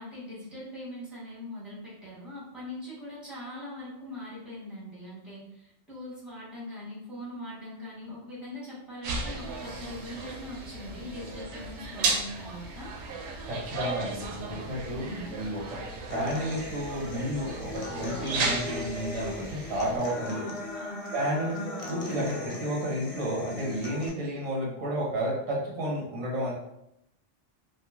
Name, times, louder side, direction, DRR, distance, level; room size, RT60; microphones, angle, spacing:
voice 1, 0.0-12.9 14.9-15.3 20.3-21.1 21.4-21.8, left 1 dB, ahead, -9 dB, 1.2 m, -41 dB
sound 1, 9.0-20.0, right 3 dB, 75° right, 0.8 m, -35 dB
voice 2, 13.5-15.1 15.3-15.8 16.1-20.5 21.1-21.5 21.9-26.5, equal, 35° right, -4 dB, 0.7 m, -31 dB
Human voice / Acoustic guitar, 16.1-24.1, left 2 dB, 65° left, 0.3 m, -38 dB
3.0 x 2.4 x 2.4 m, 0.81 s
omnidirectional pair, 1.2 m